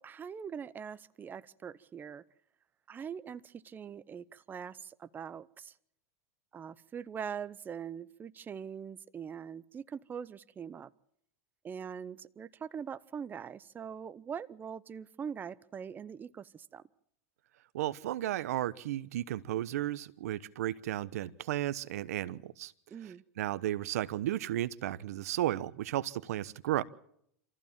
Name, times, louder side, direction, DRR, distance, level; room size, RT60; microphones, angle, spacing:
voice 1, 0.0-2.2 2.9-5.7 6.5-10.9 11.6-16.8 22.9-23.2, right 7 dB, 25° right, 16 dB, 0.8 m, -42 dB
voice 2, 17.7-22.7 23.0-26.8, right 13 dB, 75° right, 18 dB, 1.0 m, -34 dB
26.5 x 15.0 x 7.3 m, 0.70 s
hypercardioid pair, 115°, 8 cm